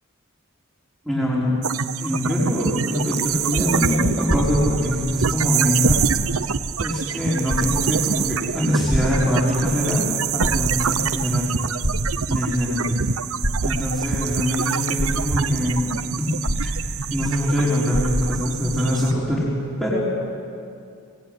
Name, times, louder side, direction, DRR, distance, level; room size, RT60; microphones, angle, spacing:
voice 1, 1.0-1.6 2.0-6.0 6.8-10.1 10.3-11.5 12.3-13.0 13.6-16.7 17.1-19.4 19.8-20.0, left 1 dB, ahead, -7 dB, 5.2 m, -23 dB
sound 1, 1.6-19.1, right 7 dB, 75° right, 0.8 m, -26 dB
sound 2, 4.3-5.2 5.8-6.4 6.9-7.0 7.4-8.1 8.9-9.7 10.2-11.1 11.8-12.6 13.4-14.1 14.6-14.7 15.0-15.7 16.4-17.3 17.5-17.6 17.9-18.5 19.3-19.4, equal, 55° left, 4.4 m, -26 dB
25.5 x 20.0 x 9.1 m, 2.4 s
head